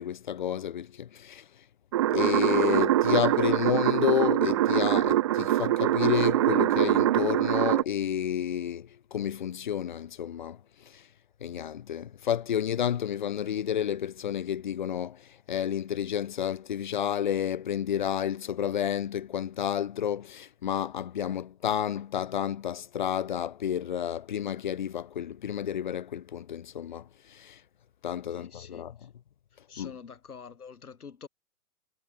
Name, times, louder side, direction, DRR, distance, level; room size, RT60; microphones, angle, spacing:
voice 1, 0.0-1.5 2.1-10.6 10.8-11.1 11.4-27.6 28.0-29.1 29.8-29.9, left 9 dB, 35° left, 0.4 m, -30 dB
sound 1, 1.9-7.8, right 14 dB, 20° right, 0.5 m, -24 dB
voice 2, 28.4-28.8 29.7-31.3, left 6 dB, 70° left, 3.1 m, -46 dB
figure-of-eight pair, 115°, 46 cm